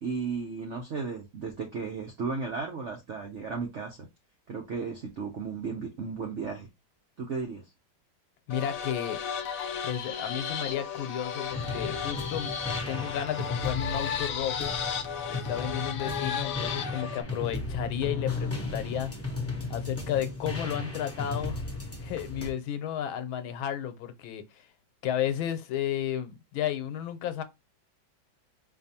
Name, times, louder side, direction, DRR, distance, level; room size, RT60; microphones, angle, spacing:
voice 1, 0.0-4.0 4.5-6.7 7.2-7.6, right 5 dB, 70° right, 0.6 m, -34 dB
voice 2, 8.5-9.2 9.8-12.5 12.9-14.7 15.3-19.1 19.7-21.6 22.0-24.7 25.0-27.4, left 10 dB, 85° left, 1.5 m, -33 dB
sound 1, 8.5-17.2, left 7 dB, 70° left, 0.8 m, -34 dB
sound 2, 11.5-22.5, left 3 dB, 15° left, 0.5 m, -35 dB
4.6 x 2.6 x 2.7 m
omnidirectional pair, 2.1 m